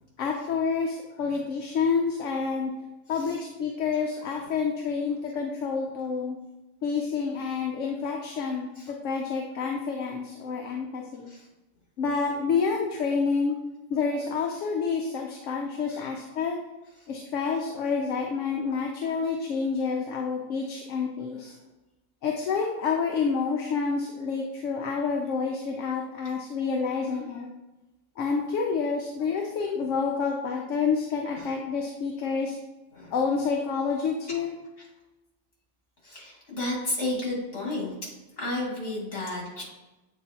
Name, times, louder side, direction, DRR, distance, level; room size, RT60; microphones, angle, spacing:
voice 1, 0.2-2.7 3.1-6.4 6.8-11.3 12.0-13.6 13.9-16.6 17.1-21.5 22.2-27.5 28.2-32.6 33.1-34.6, left 5 dB, 70° left, 1 dB, 1.0 m, -28 dB
voice 2, 36.0-38.1 38.4-39.6, left 2 dB, 55° left, -5 dB, 2.6 m, -33 dB
8.0 x 4.1 x 2.9 m, 1.0 s
omnidirectional pair, 1.4 m